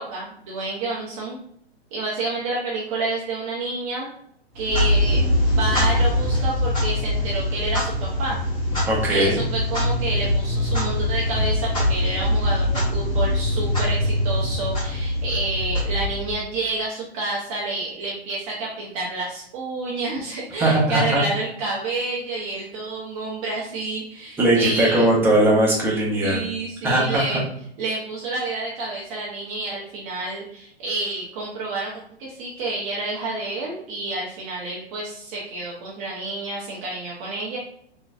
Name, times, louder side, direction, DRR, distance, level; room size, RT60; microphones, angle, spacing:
voice 1, 0.0-1.4 1.9-4.1 4.5-5.2 5.5-8.4 9.1-25.1 26.2-27.4 27.8-31.9 32.2-37.6, right 2 dB, 35° right, -4 dB, 0.7 m, -29 dB
Clock, 4.5-16.5, left 1 dB, 15° left, 1.4 m, -23 dB
voice 2, 8.9-9.4 20.6-21.2 24.4-26.4 26.8-27.4, right 1 dB, 5° right, -5 dB, 0.9 m, -19 dB
3.8 x 3.0 x 2.4 m, 0.68 s
hypercardioid pair, 135°, 32 cm